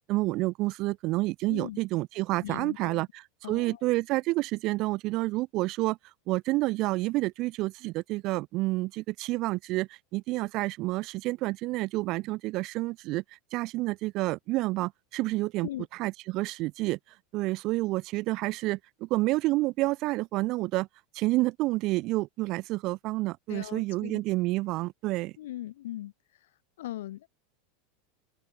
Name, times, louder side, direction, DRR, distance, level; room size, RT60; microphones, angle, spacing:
voice 1, 0.0-3.1 3.5-6.0 6.3-13.2 13.5-15.7 16.0-17.0 17.3-20.9 21.1-25.3, right 20 dB, 50° right, 1.1 m, -29 dB
voice 2, 1.5-1.8 2.4-3.0 3.4-3.8 15.6-15.9 23.5-24.2 25.4-26.1 26.8-27.3, left 14 dB, 85° left, 0.8 m, -39 dB
open air
supercardioid pair, 125°, 0 cm